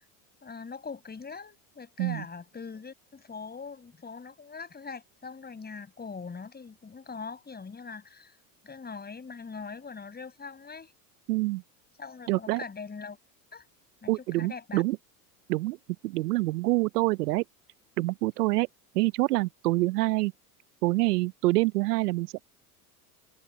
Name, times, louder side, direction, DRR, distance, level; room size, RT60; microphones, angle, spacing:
voice 1, 0.4-8.4 8.6-10.9 12.0-13.2 13.5-13.7 14.0-14.8, left 5 dB, 20° left, 7.6 m, -42 dB
voice 2, 11.3-11.6 12.3-12.6 14.1-15.0 15.5-15.8 16.0-17.4 18.0-18.7 18.9-20.3 20.8-22.4, right 20 dB, 90° right, 0.6 m, -26 dB
supercardioid pair, 100°, 46 cm